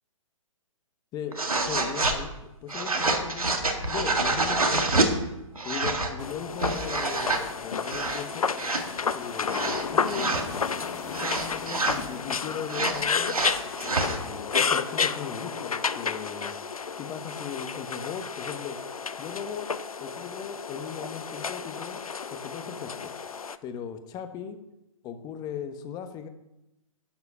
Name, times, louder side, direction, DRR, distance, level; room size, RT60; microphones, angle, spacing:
voice 1, 1.1-5.1 5.6-8.4 9.1-13.3 13.8-16.5 17.0-18.8 19.2-19.7 20.0-22.0 22.3-23.1 23.6-24.6 25.0-26.3, left 7 dB, 20° left, 9 dB, 1.1 m, -38 dB
sound 1, 1.3-2.2 2.7-5.1 5.6-6.1 6.5-7.4 7.8-8.2 8.6-8.8 9.5-10.4 11.1-12.0 12.7-14.2, right 2 dB, 90° right, 1.9 m, -27 dB
sound 2, 6.2-23.6, left 5 dB, 80° left, 0.7 m, -31 dB
sound 3, 7.3-14.1, left 6 dB, 50° left, 1.5 m, -43 dB
11.5 x 8.2 x 5.6 m, 0.93 s
figure-of-eight pair, 130°, 18 cm